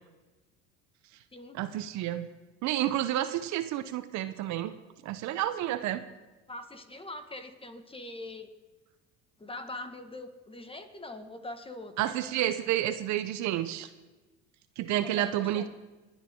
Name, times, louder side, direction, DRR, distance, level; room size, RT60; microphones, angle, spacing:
voice 1, 1.5-2.3 2.6-4.8 5.0-6.0 12.0-13.9 14.8-15.7, right 13 dB, 60° right, 12 dB, 0.9 m, -30 dB
voice 2, 6.5-8.5 9.4-12.1 15.0-15.7, left 2 dB, 15° left, 8 dB, 1.8 m, -42 dB
28.0 x 9.6 x 3.8 m, 1.2 s
hypercardioid pair, 75°, 32 cm